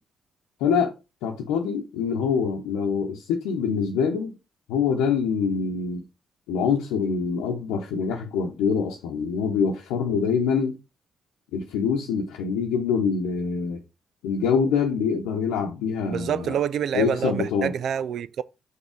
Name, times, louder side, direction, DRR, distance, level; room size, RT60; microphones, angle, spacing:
voice 1, 0.6-0.9 1.2-4.3 4.7-6.0 6.5-10.8 11.5-13.8 14.2-16.6 16.9-17.7, left 6 dB, 85° left, 0.9 m, -25 dB
voice 2, 16.0-18.4, right 8 dB, 70° right, 0.4 m, -27 dB
5.6 x 4.1 x 4.9 m
hypercardioid pair, 45°, 0 cm